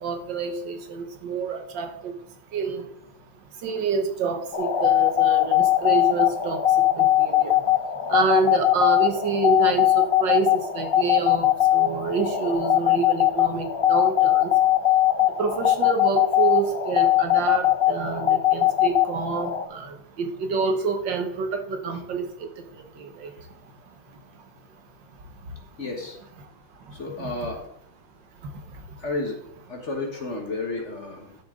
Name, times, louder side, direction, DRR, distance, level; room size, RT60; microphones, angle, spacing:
voice 1, 0.0-2.1 2.5-2.8 3.6-6.6 7.0-7.5 8.1-14.5 15.4-22.5 23.0-23.3, right 5 dB, 70° right, 6 dB, 1.9 m, -27 dB
sound 1, 4.5-19.6, left 12 dB, 65° left, 0.6 m, -21 dB
voice 2, 25.8-26.2 26.9-27.7 29.0-29.4 29.7-31.3, left 2 dB, 40° left, 2 dB, 1.5 m, -31 dB
11.5 x 6.9 x 3.8 m, 0.75 s
omnidirectional pair, 2.1 m